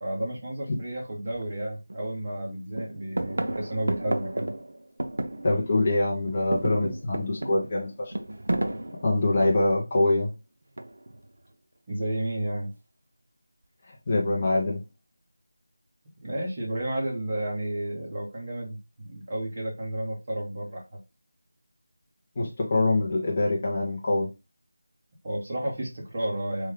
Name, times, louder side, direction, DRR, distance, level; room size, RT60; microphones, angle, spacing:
voice 1, 0.0-4.5 11.9-12.7 16.2-21.0 25.2-26.7, right 1 dB, 25° right, 0.9 m, -32 dB
sound 1, 1.3-1.4 1.9-2.5 2.7-5.9 6.2-9.8 10.8-11.2, right 1 dB, 75° right, 0.5 m, -32 dB
voice 2, 5.4-8.1 9.0-10.3 13.9-14.8 22.4-24.3, left 2 dB, 20° left, 0.5 m, -24 dB
3.2 x 2.2 x 3.5 m
figure-of-eight pair, 175°, 0 cm